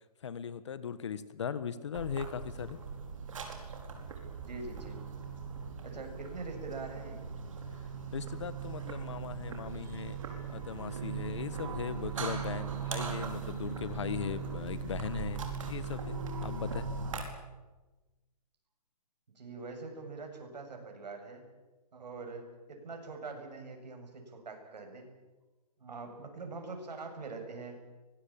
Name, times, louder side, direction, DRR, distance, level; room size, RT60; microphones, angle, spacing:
voice 1, 0.2-2.8 8.1-10.2 10.5-16.9, left 7 dB, 45° left, 16 dB, 1.4 m, -38 dB
sound 1, 1.9-17.2, right 6 dB, 50° right, 4.9 m, -39 dB
voice 2, 4.4-5.0 5.8-7.2 19.4-21.4 21.9-25.1 25.8-27.8, right 3 dB, 85° right, 4 dB, 7.6 m, -43 dB
sound 2, 9.7-16.2, right 5 dB, 10° right, 2.1 m, -55 dB
24.0 x 19.5 x 8.9 m, 1.2 s
hypercardioid pair, 180°, 21 cm